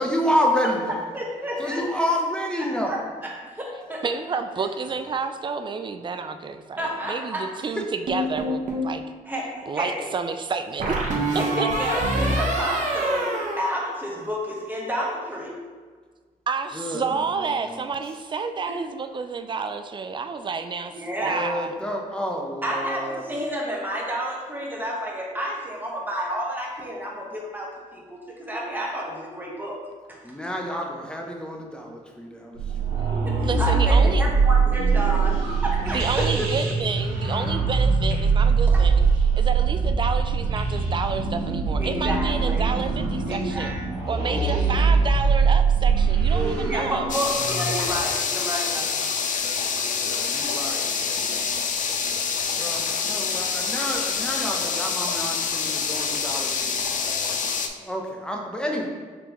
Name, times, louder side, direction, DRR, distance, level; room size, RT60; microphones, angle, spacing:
voice 1, 0.0-1.0 1.6-3.0 16.7-17.9 21.2-23.2 30.2-33.0 35.8-36.7 44.1-44.9 46.3-47.2 49.8-51.0 52.5-58.9, equal, 5° left, 0 dB, 0.8 m, -30 dB
voice 2, 1.1-1.8 2.8-3.0 3.4-4.1 6.8-7.5 9.3-10.1 11.4-15.6 18.7-18.8 20.9-21.5 22.6-29.7 30.1-30.3 33.2-36.2 38.7-38.8 41.8-42.7 43.3-43.8 46.7-49.0, equal, 10° right, -3 dB, 1.2 m, -30 dB
voice 3, 4.0-9.0 9.7-11.0 11.3-11.7 16.5-21.7 33.4-34.2 35.9-39.1 39.4-43.7 44.1-47.1, right 5 dB, 30° right, 8 dB, 0.4 m, -30 dB
sound 1, 8.1-8.9 10.8-14.4, right 1 dB, 55° right, 1.0 m, -26 dB
sound 2, 32.6-48.0, right 5 dB, 90° right, 0.9 m, -22 dB
sound 3, 47.1-57.7, left 6 dB, 60° left, 0.5 m, -26 dB
5.3 x 3.3 x 3.0 m, 1.5 s
cardioid pair, 75°, 15 cm